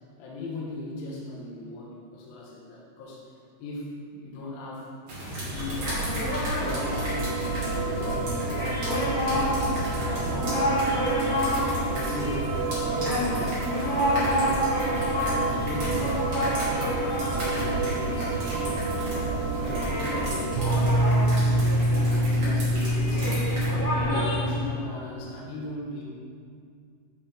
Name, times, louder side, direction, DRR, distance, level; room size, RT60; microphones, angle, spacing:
voice 1, 0.2-3.2 3.6-4.9 5.4-6.1 6.5-8.9 9.3-10.8 11.3-12.6 12.9-13.7 14.1-14.8 15.1-18.4 19.5-23.5 23.9-26.0, left 2 dB, 80° left, -3 dB, 2.1 m, -38 dB
sound 1, 5.1-23.7, equal, 55° right, 1.5 m, -36 dB
sound 2, 5.5-24.4, equal, 55° left, 1.3 m, -29 dB
sound 3, 6.6-24.7, right 1 dB, 75° right, 3.3 m, -28 dB
7.8 x 5.6 x 3.7 m, 2.3 s
omnidirectional pair, 5.4 m